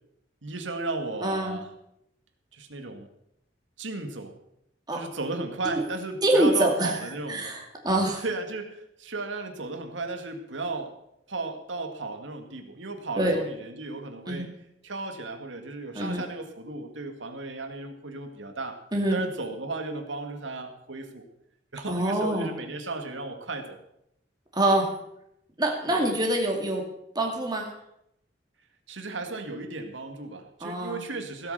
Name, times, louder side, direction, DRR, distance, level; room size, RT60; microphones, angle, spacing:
voice 1, 0.4-1.7 2.5-3.1 3.8-4.4 4.9-7.6 8.2-11.0 11.3-14.5 14.8-18.8 19.1-21.2 21.7-23.8 25.9-26.0 28.9-31.5, right 2 dB, 90° right, 5 dB, 2.1 m, -35 dB
voice 2, 1.2-1.6 4.9-5.0 5.6-5.8 6.2-6.9 7.3-8.2 13.2-13.4 14.3-14.5 15.9-16.2 18.9-19.2 21.9-22.5 24.5-25.0 25.6-26.8 27.1-27.7 30.6-31.0, right 1 dB, 20° right, 1 dB, 2.3 m, -25 dB
17.0 x 8.5 x 6.7 m, 0.78 s
head